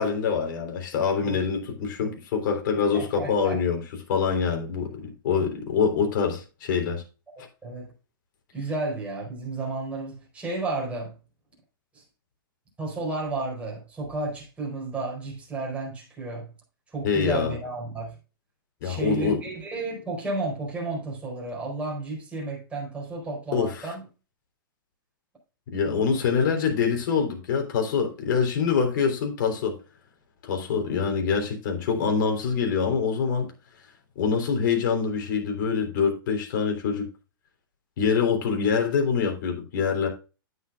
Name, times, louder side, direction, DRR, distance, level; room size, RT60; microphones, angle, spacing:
voice 1, 0.0-3.8 4.1-7.0 17.0-17.6 18.8-19.4 23.5-23.9 25.7-29.8 30.4-33.5 34.2-37.1 38.0-40.1, left 6 dB, 60° left, 3.5 m, -25 dB
voice 2, 2.9-3.6 7.4-7.9 8.5-11.1 11.9-12.0 12.8-16.5 16.9-18.2 18.8-24.0 26.1-26.2, right 2 dB, 10° right, 4.7 m, -32 dB
9.4 x 9.4 x 2.4 m
hypercardioid pair, 140°, 12 cm